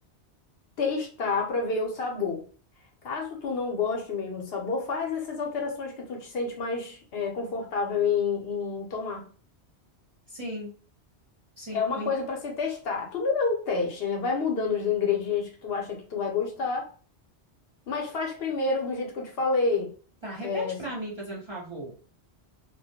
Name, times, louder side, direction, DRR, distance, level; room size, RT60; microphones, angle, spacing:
voice 1, 0.8-2.4 3.0-9.2 11.7-16.9 17.9-19.9 20.4-20.8, left 4 dB, 70° left, 1 dB, 0.8 m, -29 dB
voice 2, 10.3-10.7 11.6-12.1 20.2-21.9, right 1 dB, 30° right, -6 dB, 0.6 m, -36 dB
2.2 x 2.1 x 2.7 m, 0.40 s
omnidirectional pair, 1.1 m